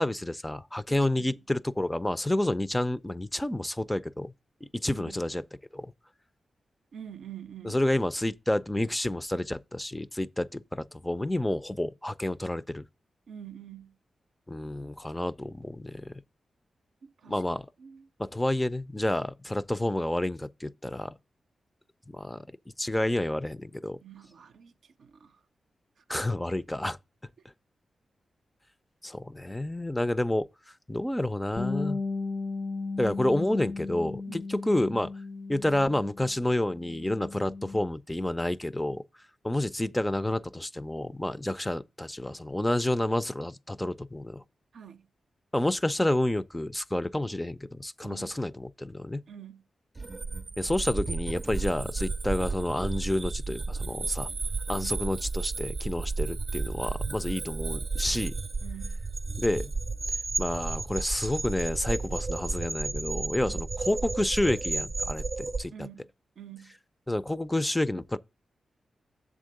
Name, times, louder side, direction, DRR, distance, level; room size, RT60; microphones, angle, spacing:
voice 1, 0.0-4.3 4.6-5.4 5.7-5.9 7.6-12.8 14.5-16.1 17.3-17.7 18.2-21.2 22.1-22.4 22.8-24.0 26.1-27.0 29.0-30.5 30.9-32.0 33.0-35.1 35.5-39.0 39.4-44.4 45.5-49.2 50.6-54.3 54.7-58.4 59.4-59.7 60.4-65.9 67.1-68.2, left 1 dB, 10° left, 0.4 m, -29 dB
voice 2, 0.9-1.4 4.9-5.2 6.9-7.8 13.3-13.9 17.0-17.4 17.8-18.0 24.0-24.7 25.0-25.3 34.3-34.4 44.7-45.1 48.0-48.3 49.3-49.6 54.7-54.9 58.6-59.0 63.4-63.6 65.7-66.1 66.4-66.7, right 9 dB, 80° right, 0.5 m, -46 dB
Bass guitar, 31.6-36.3 36.6-37.8, left 3 dB, 50° left, 0.7 m, -35 dB
sound 1, 50.0-65.6, right 3 dB, 40° right, 0.6 m, -33 dB
7.5 x 3.7 x 6.5 m
cardioid pair, 80°, 0 cm